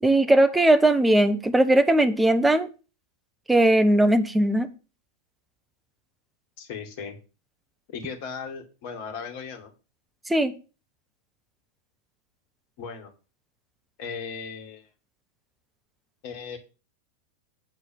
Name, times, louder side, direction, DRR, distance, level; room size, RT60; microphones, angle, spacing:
voice 1, 0.0-2.7 3.5-4.7 10.3-10.5, right 1 dB, 5° right, 9 dB, 1.0 m, -19 dB
voice 2, 6.6-7.2 7.9-9.7 12.8-13.1 14.0-14.9 16.2-16.6, left 6 dB, 50° left, 5 dB, 2.0 m, -37 dB
8.7 x 4.7 x 7.1 m, 0.33 s
figure-of-eight pair, 90°, 0 cm